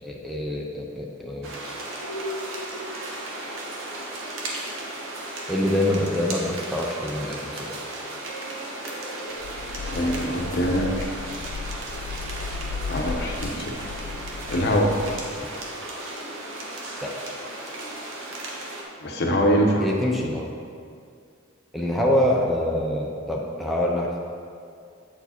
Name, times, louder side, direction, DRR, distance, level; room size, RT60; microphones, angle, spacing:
voice 1, 0.0-1.5 5.5-7.7 17.0-17.1 19.8-20.5 21.7-24.2, left 1 dB, ahead, -2 dB, 0.5 m, -25 dB
sound 1, 1.4-18.8, right 1 dB, 70° right, 1.1 m, -35 dB
sound 2, 9.4-15.4, left 5 dB, 85° left, 0.4 m, -35 dB
voice 2, 9.9-11.1 12.9-13.6 14.5-14.9 19.0-19.8, equal, 55° left, 1 dB, 0.8 m, -23 dB
8.2 x 4.7 x 4.3 m, 2.3 s
head